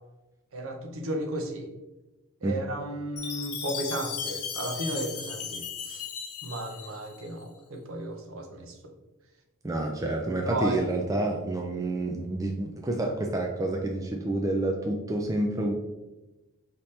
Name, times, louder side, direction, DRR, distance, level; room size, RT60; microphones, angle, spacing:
voice 1, 0.5-1.7 2.4-6.1 6.4-8.8 10.4-10.8, right 1 dB, 65° right, 3 dB, 0.7 m, -34 dB
Chime, 3.2-7.3, left 6 dB, 85° left, 0.8 m, -36 dB
voice 2, 9.6-15.7, right 2 dB, 15° right, 2 dB, 0.3 m, -28 dB
5.4 x 2.9 x 3.2 m, 1.0 s
head